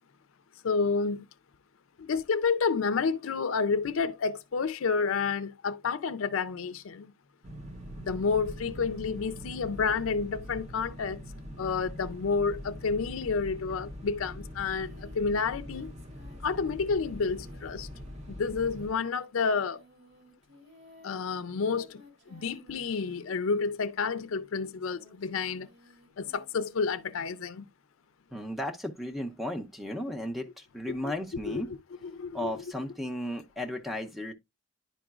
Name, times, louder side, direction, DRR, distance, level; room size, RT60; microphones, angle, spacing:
voice 1, 0.6-1.3 2.0-7.1 8.0-11.2 11.6-15.9 16.4-17.9 18.3-19.8 21.0-22.0 22.3-25.7 26.2-27.7 31.5-31.6 32.1-32.5, left 5 dB, 90° left, 0.5 m, -30 dB
sound 1, 7.4-19.0, equal, 35° right, 0.8 m, -43 dB
Singing, 14.7-24.0 24.5-27.4, equal, 55° right, 2.5 m, -59 dB
voice 2, 28.3-31.7 32.3-34.3, left 1 dB, ahead, 0.6 m, -35 dB
10.5 x 4.9 x 2.4 m
head